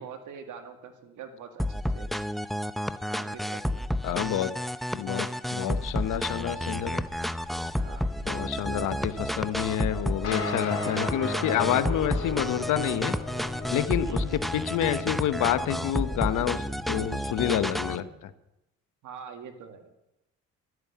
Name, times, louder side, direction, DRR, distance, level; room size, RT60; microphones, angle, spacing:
voice 1, 0.0-2.1 3.2-3.8 7.8-8.1 14.0-14.3 19.0-19.9, right 6 dB, 80° right, 6 dB, 2.1 m, -44 dB
sound 1, 1.6-18.0, equal, ahead, 0.6 m, -31 dB
voice 2, 4.0-4.5 4.9-7.1 8.2-13.2 13.7-18.3, left 11 dB, 80° left, 12 dB, 1.0 m, -28 dB
sound 2, 5.7-16.6, left 2 dB, 20° left, 5.0 m, -48 dB
sound 3, 10.2-18.0, left 3 dB, 50° left, 3.9 m, -37 dB
12.5 x 9.5 x 8.5 m, 0.90 s
cardioid pair, 90°, 30 cm